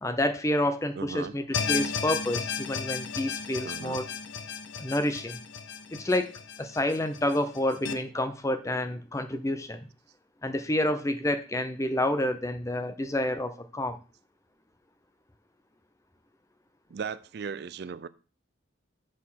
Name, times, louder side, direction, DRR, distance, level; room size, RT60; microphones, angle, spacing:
voice 1, 0.0-4.1 4.8-5.4 5.9-9.9 10.4-14.0, left 1 dB, 15° left, 0.5 m, -29 dB
voice 2, 1.0-1.3 3.6-4.0 16.9-18.1, right 6 dB, 55° right, 0.4 m, -37 dB
sound 1, 1.5-7.9, left 6 dB, 75° left, 0.7 m, -34 dB
7.4 x 4.2 x 5.7 m
head